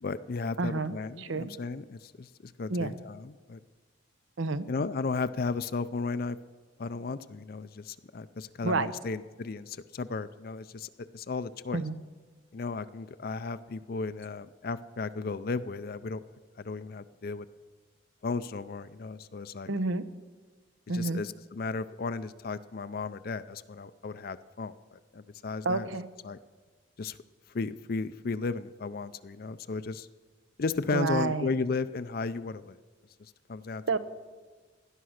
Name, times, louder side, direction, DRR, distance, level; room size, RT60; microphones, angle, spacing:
voice 1, 0.0-3.6 4.7-6.4 6.8-11.8 12.5-16.2 16.6-17.5 18.2-19.7 20.9-25.9 26.2-26.4 27.0-27.2 27.5-30.1 30.6-32.8 33.2-33.8, left 4 dB, 50° left, 12 dB, 0.5 m, -34 dB
voice 2, 0.6-1.5 2.7-3.0 4.4-4.7 8.6-8.9 11.7-11.9 19.7-20.0 20.9-21.2 25.6-26.1 30.9-31.5 33.9-34.0, right 3 dB, 85° right, 14 dB, 0.8 m, -29 dB
17.0 x 10.5 x 6.4 m, 1.4 s
head